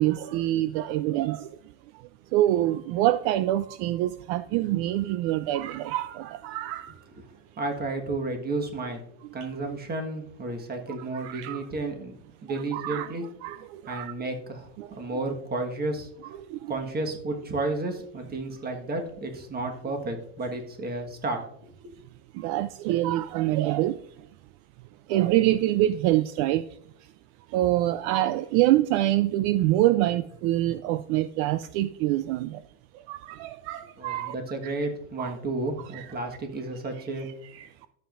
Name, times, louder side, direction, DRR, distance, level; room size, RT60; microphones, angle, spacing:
voice 1, 0.0-1.5 2.3-6.9 11.1-11.6 12.5-13.1 13.4-14.1 14.8-14.9 16.5-16.7 22.3-24.0 25.1-26.6 27.5-32.6 33.1-34.3 34.6-34.7 35.2-35.3 35.9-36.1 37.5-37.7, right 14 dB, 60° right, 0.5 m, -25 dB
voice 2, 7.6-9.0 9.3-13.2 13.9-14.7 15.0-16.1 16.7-21.8 34.0-37.3, right 2 dB, 20° right, 1.4 m, -32 dB
12.5 x 7.3 x 2.5 m
supercardioid pair, 140°, 45 cm